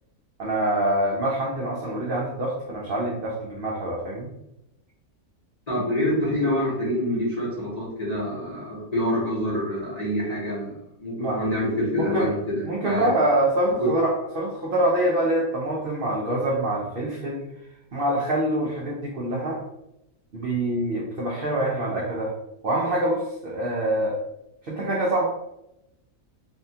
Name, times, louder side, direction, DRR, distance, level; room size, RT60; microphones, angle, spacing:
voice 1, 0.4-4.3 11.2-11.4 11.9-12.3 12.6-17.5 17.9-19.6 20.3-22.3 22.6-24.2 24.6-25.3, right 1 dB, 65° right, -4 dB, 0.5 m, -25 dB
voice 2, 5.7-10.7 11.0-13.1 13.8-13.9, equal, 35° left, -8 dB, 0.8 m, -26 dB
2.7 x 2.3 x 2.7 m, 0.85 s
omnidirectional pair, 1.6 m